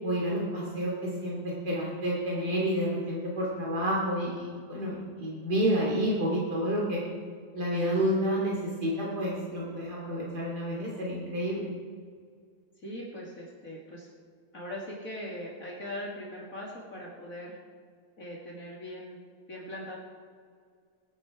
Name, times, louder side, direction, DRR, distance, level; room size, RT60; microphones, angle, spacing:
voice 1, 0.0-7.0 7.5-11.7, equal, 75° right, -4 dB, 3.4 m, -29 dB
voice 2, 12.8-14.1 14.5-17.6 18.2-19.2 19.5-20.0, left 1 dB, 55° left, -5 dB, 2.8 m, -40 dB
21.0 x 10.0 x 4.9 m, 2.1 s
omnidirectional pair, 1.7 m